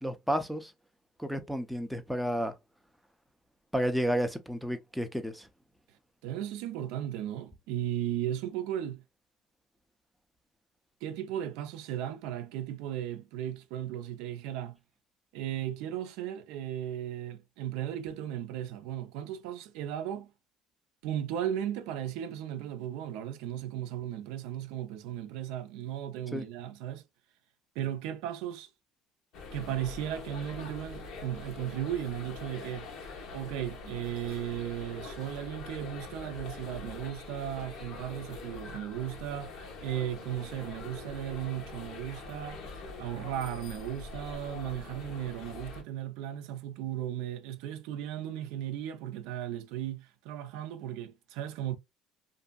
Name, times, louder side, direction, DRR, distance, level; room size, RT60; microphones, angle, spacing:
voice 1, 0.0-0.7 1.2-2.5 3.7-5.5 26.3-26.4, equal, ahead, 0.5 m, -31 dB
voice 2, 6.2-9.0 11.0-14.8 15.3-20.3 21.0-27.0 27.8-28.7 29.5-51.8, right 11 dB, 85° right, 0.4 m, -36 dB
sound 1, 29.3-45.8, left 3 dB, 65° left, 1.0 m, -44 dB
2.6 x 2.5 x 2.3 m
cardioid pair, 125°, 0 cm